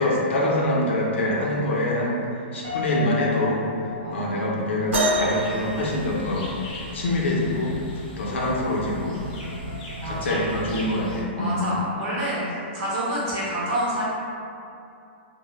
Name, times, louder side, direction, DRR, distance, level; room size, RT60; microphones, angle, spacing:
voice 1, 0.0-2.2 2.5-3.6 4.1-6.5 6.9-7.7 8.1-9.2 9.4-9.5 10.0-11.7, left 1 dB, 85° left, -3 dB, 0.5 m, -25 dB
Piano, 2.6-4.9, left 8 dB, 50° right, 0.8 m, -34 dB
voice 2, 4.0-4.6 10.0-10.5 11.4-14.0, right 1 dB, 25° right, -8 dB, 0.5 m, -28 dB
sound 1, 4.9-6.8 8.5-8.6 9.4-9.6 10.5-10.6, right 1 dB, 85° right, 0.7 m, -26 dB
sound 2, 5.0-11.2, left 1 dB, 35° left, 0.5 m, -38 dB
2.0 x 2.0 x 3.0 m, 2.5 s
hypercardioid pair, 180°, 6 cm